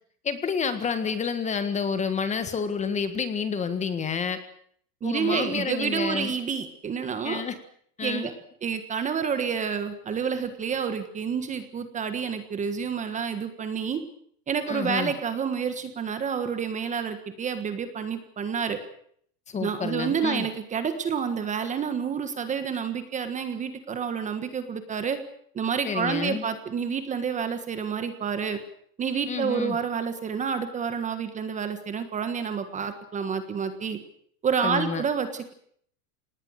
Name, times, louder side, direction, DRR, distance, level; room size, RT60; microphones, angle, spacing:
voice 1, 0.2-4.4 5.0-6.3 7.2-7.5 8.0-8.3 14.7-15.1 19.5-20.5 25.8-26.4 29.3-29.8 34.6-35.0, left 6 dB, 15° left, 10 dB, 1.7 m, -29 dB
voice 2, 5.0-7.4 8.0-8.3 8.6-14.0 14.5-18.8 19.6-25.2 25.5-28.6 29.0-34.0 34.4-35.5, right 6 dB, 15° right, 9 dB, 1.6 m, -29 dB
26.5 x 19.5 x 6.6 m, 0.63 s
supercardioid pair, 165°, 45 cm